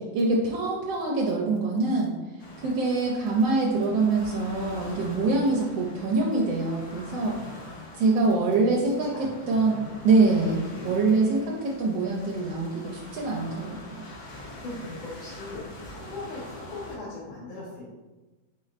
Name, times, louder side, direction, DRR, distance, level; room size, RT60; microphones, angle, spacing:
voice 1, 0.1-2.1 2.6-7.4 7.9-9.1 9.5-9.8 10.0-14.1, right 3 dB, 80° right, -3 dB, 1.3 m, -24 dB
sound 1, 2.4-17.0, left 1 dB, 60° left, 1.2 m, -44 dB
voice 2, 7.1-8.3 8.6-9.9 10.7-10.9 14.2-17.8, left 2 dB, 85° left, -7 dB, 1.7 m, -41 dB
4.7 x 4.1 x 2.4 m, 1.2 s
omnidirectional pair, 2.1 m